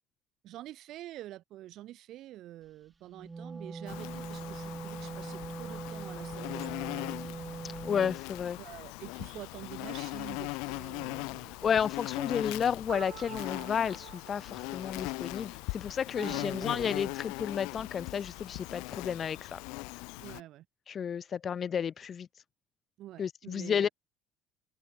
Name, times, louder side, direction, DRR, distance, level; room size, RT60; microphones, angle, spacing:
voice 1, 0.4-6.9 8.6-11.8 12.3-12.5 16.2-17.1 20.2-20.6 23.0-23.9, right 14 dB, 50° right, 4.5 m, -47 dB
Wind instrument woodwind instrument, 3.1-8.2, right 4 dB, 15° right, 7.7 m, -41 dB
Insect, 3.9-20.4, left 28 dB, 80° left, 1.0 m, -40 dB
voice 2, 7.6-8.6 11.6-19.6 20.9-22.3 23.2-23.9, left 7 dB, 30° left, 0.5 m, -32 dB
sound 1, 12.9-15.8, right 26 dB, 75° right, 6.2 m, -49 dB
cardioid pair, 155°, 0 cm